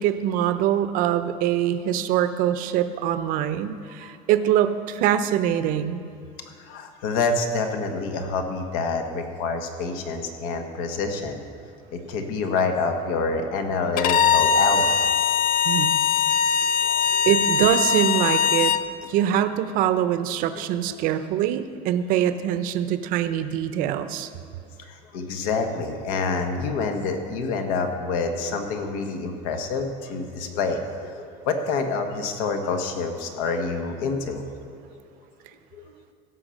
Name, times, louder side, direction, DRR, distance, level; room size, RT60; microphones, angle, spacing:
voice 1, 0.0-6.0 15.6-16.0 17.3-18.8 19.1-24.3, right 10 dB, 60° right, 11 dB, 0.6 m, -23 dB
voice 2, 6.6-11.4 11.9-15.0 16.8-17.3 20.9-21.0 24.8-34.4 35.7-35.9, left 4 dB, 85° left, 5 dB, 1.4 m, -27 dB
Bowed string instrument, 14.0-18.9, left 7 dB, 55° left, 0.5 m, -21 dB
16.0 x 5.7 x 6.4 m, 2.4 s
cardioid pair, 145°, 16 cm